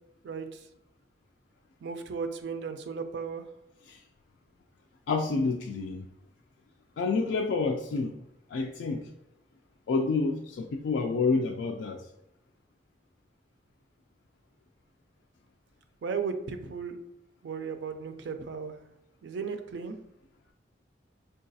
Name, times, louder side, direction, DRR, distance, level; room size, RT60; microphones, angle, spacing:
voice 1, 0.2-0.7 1.8-3.5 16.0-17.0 17.4-18.8 19.2-20.0, right 5 dB, 75° right, 7 dB, 0.4 m, -35 dB
voice 2, 5.1-6.1 7.0-8.2 8.5-9.1 9.9-12.1, left 4 dB, 90° left, 1 dB, 0.3 m, -28 dB
3.8 x 2.3 x 2.6 m, 0.84 s
head